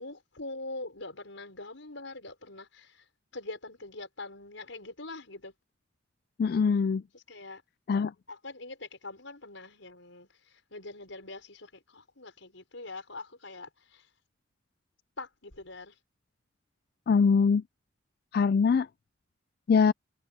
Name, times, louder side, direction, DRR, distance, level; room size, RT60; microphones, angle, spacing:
voice 1, 0.0-3.0 3.3-5.5 7.3-7.6 8.3-10.3 10.7-14.0 15.2-15.9, left 2 dB, 80° left, 5.4 m, -43 dB
voice 2, 6.4-7.0 7.9-8.1 17.1-17.6 18.3-18.9 19.7-19.9, left 5 dB, 50° left, 0.3 m, -23 dB
head